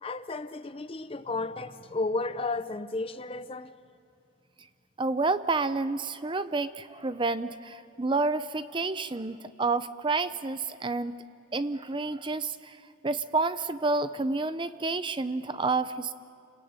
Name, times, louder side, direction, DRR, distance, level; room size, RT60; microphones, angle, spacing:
voice 1, 0.0-3.7, left 3 dB, 25° left, 0.6 m, -33 dB
voice 2, 5.0-11.2 11.5-12.8 13.0-16.1, right 3 dB, 25° right, 0.5 m, -29 dB
29.0 x 21.0 x 8.9 m
head